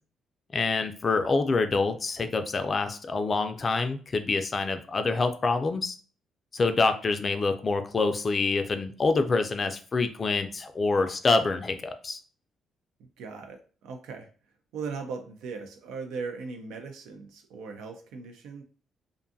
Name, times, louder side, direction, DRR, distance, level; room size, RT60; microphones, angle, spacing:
voice 1, 0.5-6.0 6.5-12.2, left 3 dB, 35° left, 8 dB, 0.4 m, -26 dB
voice 2, 13.0-14.3 14.7-18.6, right 5 dB, 90° right, 4 dB, 0.5 m, -38 dB
2.5 x 2.3 x 2.6 m, 0.39 s
cardioid pair, 90°, 0 cm